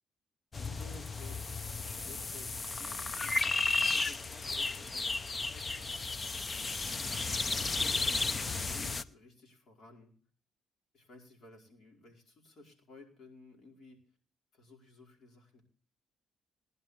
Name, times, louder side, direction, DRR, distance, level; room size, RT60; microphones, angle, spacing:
sound 1, 0.5-9.0, left 3 dB, 30° left, 0.7 m, -34 dB
voice 1, 0.6-1.4 1.6-5.9 6.9-10.1 10.9-14.0 14.5-15.6, left 3 dB, 60° left, 1 dB, 5.0 m, -55 dB
20.0 x 11.0 x 3.3 m, 0.43 s
cardioid pair, 90°, 0 cm